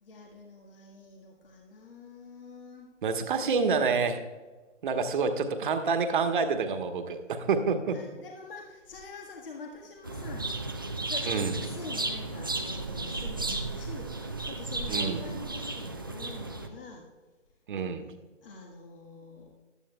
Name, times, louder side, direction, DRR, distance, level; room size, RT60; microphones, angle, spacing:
voice 1, 0.0-2.9 7.9-10.6 11.1-17.0 18.4-19.6, left 3 dB, 50° left, 1 dB, 1.6 m, -46 dB
voice 2, 3.0-4.2 4.8-8.0 11.3-11.6 14.9-15.3 17.7-18.1, right 5 dB, 45° right, 7 dB, 1.2 m, -28 dB
sound 1, 10.0-16.7, right 2 dB, 20° right, 0.3 m, -34 dB
15.5 x 12.0 x 2.3 m, 1.3 s
figure-of-eight pair, 135°, 36 cm